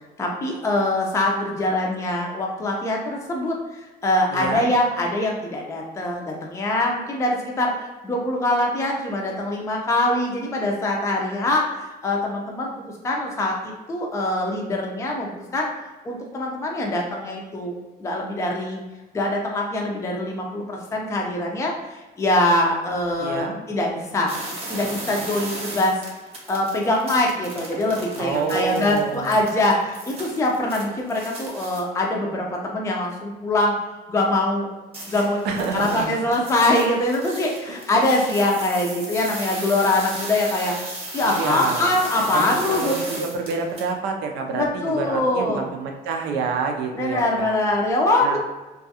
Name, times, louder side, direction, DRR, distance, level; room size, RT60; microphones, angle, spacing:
voice 1, 0.2-12.7 13.0-15.7 16.0-17.7 18.0-18.8 19.1-24.3 24.7-26.0 26.5-33.8 34.1-34.7 35.1-35.4 35.7-40.7 41.1-43.0 44.5-45.6 46.9-48.4, left 1 dB, 15° left, -1 dB, 0.4 m, -23 dB
voice 2, 4.3-4.7 23.2-23.6 28.2-29.4 35.4-36.2 37.7-37.8 41.2-41.9 42.3-47.6 48.2-48.4, right 5 dB, 90° right, 3 dB, 0.5 m, -28 dB
sound 1, 24.3-31.8 34.9-43.9, right 2 dB, 35° right, 0.7 m, -35 dB
2.4 x 2.3 x 2.7 m, 1.2 s
cardioid pair, 110°, 17 cm